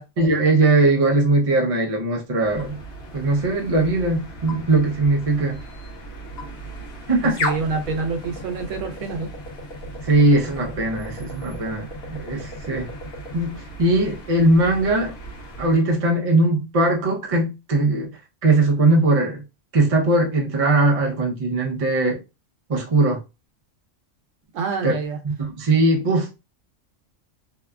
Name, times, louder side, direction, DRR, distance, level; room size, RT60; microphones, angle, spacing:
voice 1, 0.2-2.8 3.1-5.6 7.1-7.4 10.0-12.9 13.3-15.1 15.6-18.1 18.4-19.4 19.7-22.2 22.7-23.2 24.8-24.9 25.4-26.4, right 2 dB, 40° right, 0.6 m, -20 dB
sound 1, 2.4-15.8, left 1 dB, 60° left, 0.9 m, -35 dB
voice 2, 7.2-9.3 24.5-25.2, right 4 dB, 80° right, 0.9 m, -27 dB
2.7 x 2.3 x 2.2 m
omnidirectional pair, 1.3 m